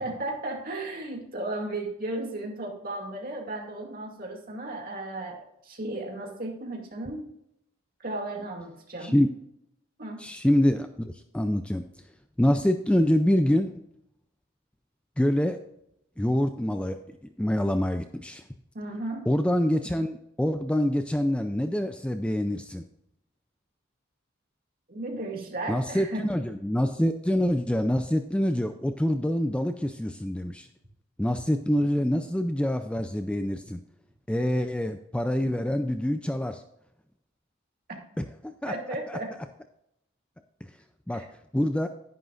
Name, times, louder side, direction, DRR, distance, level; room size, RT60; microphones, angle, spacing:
voice 1, 0.0-7.2 8.0-9.1 10.0-10.2 18.7-19.3 24.9-26.3 38.7-39.3 41.1-41.3, right 2 dB, 45° right, 1 dB, 2.3 m, -35 dB
voice 2, 10.2-11.8 12.4-13.7 15.2-15.6 16.2-17.0 17.4-18.4 19.3-22.8 25.7-30.7 31.2-33.8 34.3-36.6 38.2-38.7 39.1-39.2 41.1-41.3 41.5-41.9, left 1 dB, 5° left, 7 dB, 0.4 m, -26 dB
11.0 x 10.5 x 2.5 m, 0.79 s
head